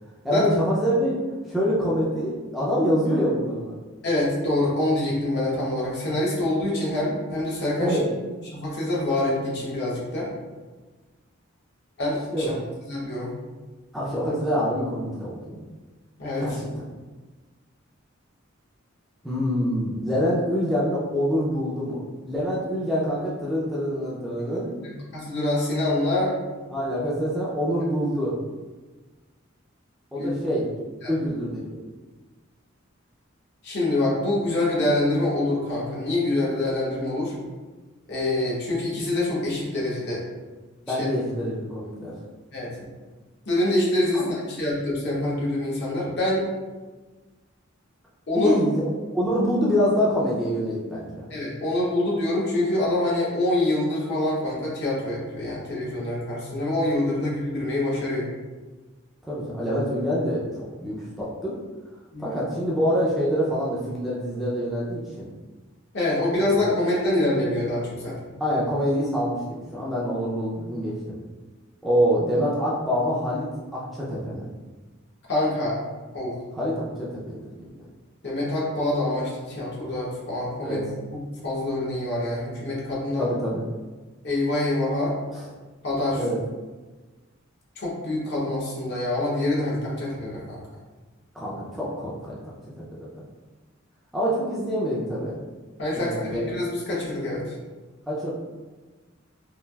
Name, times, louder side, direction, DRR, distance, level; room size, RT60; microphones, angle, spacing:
voice 1, 0.2-1.2 1.5-3.8 7.8-8.1 12.3-12.5 13.9-15.7 16.4-16.7 19.2-24.7 26.7-28.4 30.1-30.7 31.1-31.8 40.9-42.1 44.1-44.3 48.3-48.8 49.1-51.2 59.3-61.6 62.2-65.2 66.5-66.6 68.4-71.2 71.8-73.5 73.7-74.5 76.5-77.7 80.6-80.8 83.2-83.6 85.3-85.4 86.2-86.4 91.3-92.4 93.0-93.3 94.1-95.4 95.9-96.5 98.1-98.3, equal, ahead, -8 dB, 0.4 m, -26 dB
voice 2, 4.0-8.0 8.4-10.3 12.0-12.5 12.8-13.3 16.2-16.6 24.8-26.3 30.2-30.3 31.0-31.1 33.6-37.3 38.1-40.2 40.9-41.1 42.5-42.9 43.5-46.5 48.3-48.5 51.3-58.2 62.1-62.3 65.9-68.3 75.3-75.8 76.1-76.4 78.2-80.8 81.1-83.3 84.2-85.2 85.8-86.2 87.8-90.6 95.8-97.5, left 1 dB, 55° left, -5 dB, 0.9 m, -25 dB
3.1 x 2.4 x 2.2 m, 1.3 s
head